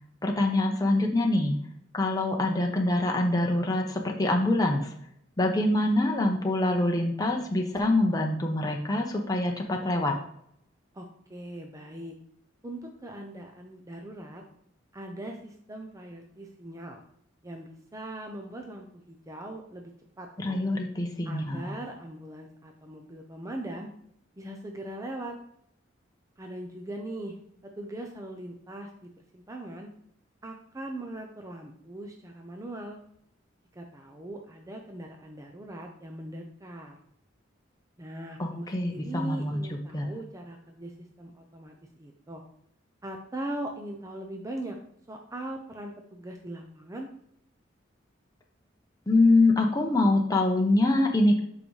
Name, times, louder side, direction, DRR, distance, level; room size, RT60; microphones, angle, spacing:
voice 1, 0.2-1.6 1.9-4.9 5.4-10.1 20.4-21.7 38.4-39.6 39.9-40.1 49.1-51.4, left 2 dB, 20° left, 1 dB, 0.7 m, -25 dB
voice 2, 10.9-12.2 12.6-14.4 14.9-17.0 17.4-19.9 20.2-20.7 21.2-23.9 24.4-25.4 26.4-27.4 27.6-29.9 30.4-33.0 33.7-37.0 38.0-42.4 43.0-44.8 45.1-47.1, right 1 dB, 15° right, 2 dB, 0.6 m, -40 dB
7.6 x 4.9 x 3.2 m, 0.71 s
head